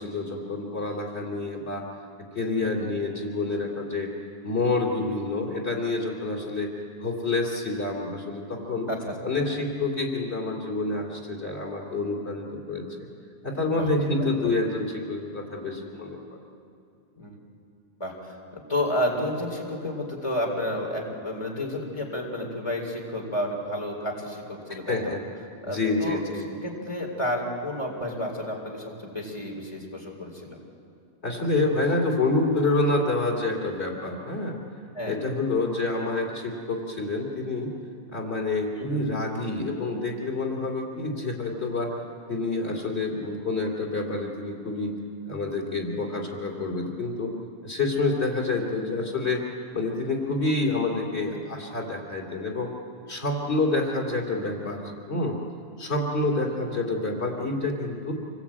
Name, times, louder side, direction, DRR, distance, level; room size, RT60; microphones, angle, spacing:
voice 1, 0.0-1.8 2.3-4.1 4.4-6.7 7.0-8.9 9.2-12.9 13.4-16.4 24.9-25.2 25.7-26.5 31.2-34.6 35.1-37.7 38.1-42.0 42.3-44.9 45.3-47.3 47.6-49.4 49.7-52.7 53.1-55.4 55.8-58.1, left 2 dB, 90° left, 0 dB, 3.4 m, -28 dB
voice 2, 14.2-14.5 17.2-17.4 18.0-25.1 25.6-26.2 26.6-30.6 34.9-35.2 38.8-39.2, left 1 dB, 25° left, -1 dB, 4.2 m, -31 dB
26.5 x 20.5 x 8.9 m, 2.4 s
omnidirectional pair, 1.1 m